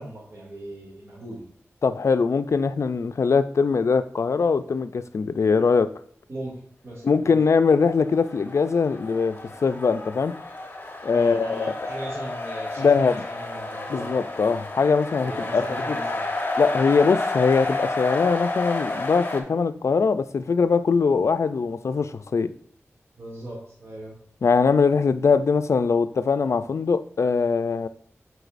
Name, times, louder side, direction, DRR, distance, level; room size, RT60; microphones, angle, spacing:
voice 1, 0.0-1.4 6.3-6.6 6.8-7.4 11.1-14.1 15.2-16.3 23.2-24.1, right 1 dB, 65° right, -7 dB, 2.3 m, -38 dB
voice 2, 1.8-5.9 7.0-10.3 11.0-11.7 12.8-13.2 13.9-16.0 16.6-22.5 24.4-27.9, left 5 dB, 70° left, 13 dB, 0.4 m, -22 dB
sound 1, 7.9-19.4, left 2 dB, 40° left, 1.0 m, -31 dB
7.9 x 4.7 x 2.5 m, 0.65 s
wide cardioid pair, 60°, 5 cm